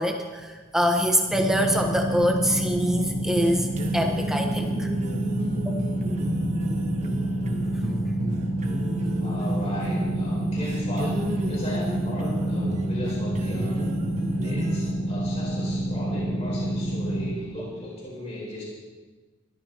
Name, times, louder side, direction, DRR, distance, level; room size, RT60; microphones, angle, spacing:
voice 1, 0.0-3.7 3.9-4.9 5.6-5.7, equal, ahead, 2 dB, 1.2 m, -24 dB
sound 1, 1.3-17.3, right 1 dB, 65° left, 3.0 m, -28 dB
sound 2, 2.0-14.9, right 1 dB, 35° right, 1.2 m, -33 dB
voice 2, 9.2-13.8 14.4-18.6, left 1 dB, 30° left, -6 dB, 4.2 m, -36 dB
21.5 x 13.5 x 3.0 m, 1.3 s
head